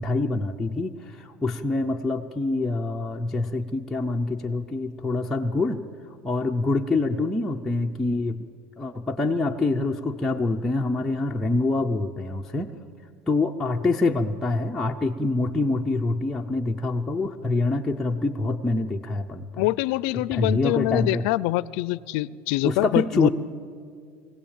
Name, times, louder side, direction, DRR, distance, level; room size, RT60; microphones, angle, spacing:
voice 1, 0.0-5.8 6.2-8.5 8.8-12.7 13.3-19.7 20.1-21.3 22.6-23.3, left 2 dB, 5° left, -1 dB, 0.5 m, -25 dB
voice 2, 19.6-23.3, left 18 dB, 65° left, 20 dB, 0.5 m, -24 dB
22.0 x 16.0 x 8.9 m, 2.3 s
cardioid pair, 170°, 6 cm